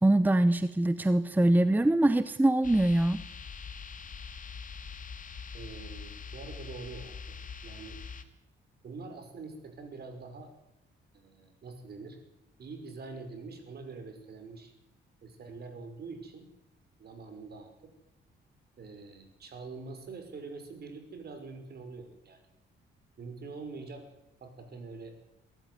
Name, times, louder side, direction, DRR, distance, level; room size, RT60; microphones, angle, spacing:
voice 1, 0.0-3.2, right 1 dB, 10° right, 14 dB, 0.8 m, -23 dB
sound 1, 2.6-8.2, left 5 dB, 40° left, 2.0 m, -43 dB
voice 2, 5.5-7.4 7.6-8.0 8.8-10.5 11.1-12.2 12.6-14.7 15.2-16.5 17.0-17.9 18.8-22.4 23.2-24.0 24.4-25.1, right 4 dB, 55° right, 7 dB, 5.7 m, -45 dB
22.5 x 14.0 x 9.4 m, 0.88 s
cardioid pair, 90°, 20 cm